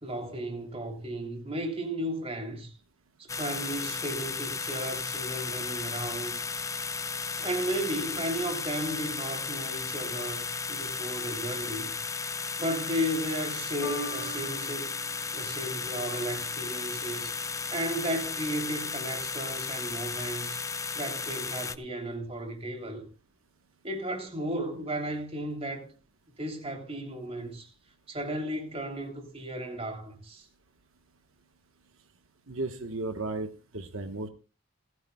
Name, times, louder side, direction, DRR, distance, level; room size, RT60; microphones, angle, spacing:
voice 1, 0.0-2.7 3.2-6.4 7.4-11.9 12.6-14.9 15.3-17.3 17.7-20.6 20.9-23.0 23.8-25.9 26.4-27.7 28.1-30.5, right 1 dB, 30° right, 3.1 m, -34 dB
sound 1, 3.3-21.8, left 5 dB, 15° left, 0.6 m, -34 dB
Piano, 13.8-20.4 21.2-21.3, equal, 85° left, 3.3 m, -46 dB
voice 2, 32.5-34.3, right 2 dB, 75° right, 1.2 m, -34 dB
28.5 x 9.6 x 2.3 m
head